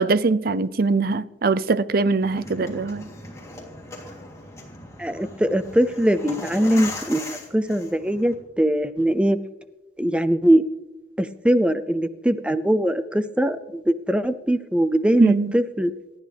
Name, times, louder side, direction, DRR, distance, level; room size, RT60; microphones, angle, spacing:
voice 1, 0.0-3.1 15.2-15.5, right 3 dB, 55° right, 0.5 m, -22 dB
sound 1, 2.2-8.3, left 2 dB, 15° left, 3.2 m, -38 dB
voice 2, 5.0-9.4 10.0-10.6 11.2-15.9, right 1 dB, 5° right, 0.5 m, -21 dB
28.0 x 10.5 x 3.4 m
head